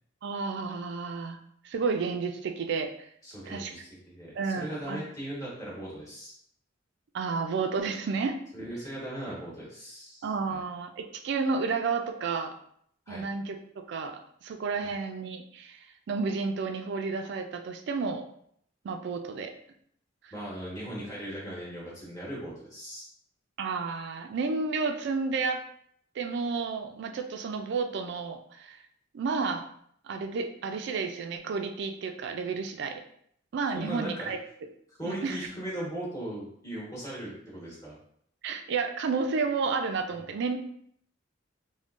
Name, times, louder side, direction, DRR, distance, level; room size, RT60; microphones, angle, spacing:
voice 1, 0.2-1.4 1.6-3.1 3.5-3.7 4.4-5.0 7.1-8.4 10.2-12.6 13.1-15.8 16.1-18.2 18.8-19.5 20.2-20.3 23.6-25.6 26.2-28.8 29.1-29.6 30.0-33.0 33.5-34.4 35.0-35.4 38.4-40.6, right 4 dB, 60° right, 6 dB, 0.3 m, -31 dB
voice 2, 3.2-6.3 8.5-10.6 13.1-13.3 14.8-14.9 20.3-23.1 33.7-34.3 34.9-38.0, right 1 dB, 15° left, -7 dB, 1.2 m, -38 dB
3.6 x 2.1 x 2.4 m, 0.67 s
head